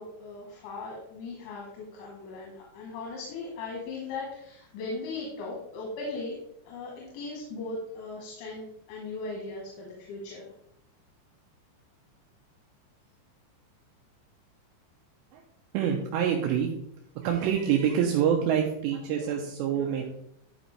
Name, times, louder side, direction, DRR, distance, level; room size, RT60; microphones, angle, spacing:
voice 1, 0.0-6.4 6.7-10.5, left 3 dB, 90° left, -2 dB, 3.8 m, -38 dB
voice 2, 15.7-16.8 17.2-20.0, right 8 dB, 85° right, 1 dB, 2.9 m, -26 dB
11.5 x 5.2 x 3.3 m, 0.75 s
omnidirectional pair, 5.2 m